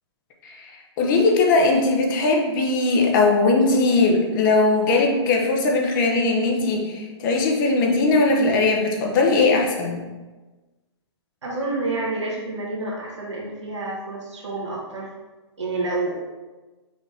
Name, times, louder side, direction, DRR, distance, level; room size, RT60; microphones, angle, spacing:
voice 1, 1.0-10.0, left 3 dB, 45° left, 0 dB, 0.9 m, -19 dB
voice 2, 11.4-15.1 15.6-16.1, right 2 dB, 80° right, -4 dB, 1.3 m, -28 dB
5.1 x 2.7 x 3.4 m, 1.2 s
hypercardioid pair, 125°, 15 cm